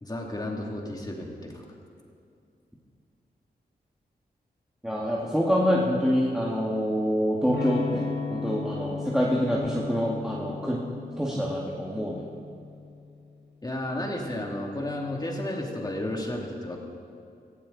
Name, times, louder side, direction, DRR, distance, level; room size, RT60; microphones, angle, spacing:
voice 1, 0.0-1.6 13.6-16.8, left 1 dB, 25° left, 0 dB, 2.7 m, -32 dB
voice 2, 4.8-10.8 11.2-12.3, equal, 5° right, -4 dB, 2.0 m, -26 dB
Electric guitar / Strum, 7.5-13.2, left 5 dB, 85° left, 1.1 m, -36 dB
19.0 x 14.5 x 4.1 m, 2.5 s
cardioid pair, 75°, 17 cm